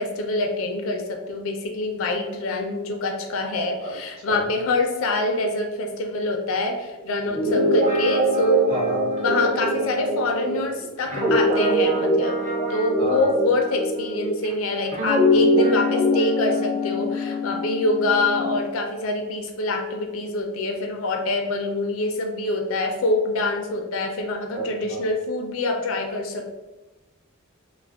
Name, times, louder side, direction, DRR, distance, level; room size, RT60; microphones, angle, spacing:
voice 1, 0.0-8.7 9.2-12.4 12.7-26.5, left 2 dB, 70° left, 3 dB, 0.4 m, -25 dB
Guitar, 7.3-14.5 14.9-18.6, equal, 30° right, 0.5 m, -23 dB
voice 2, 8.7-9.1 13.0-13.2 24.5-25.0, equal, 50° right, -4 dB, 0.9 m, -30 dB
2.3 x 2.1 x 3.4 m, 1.1 s
head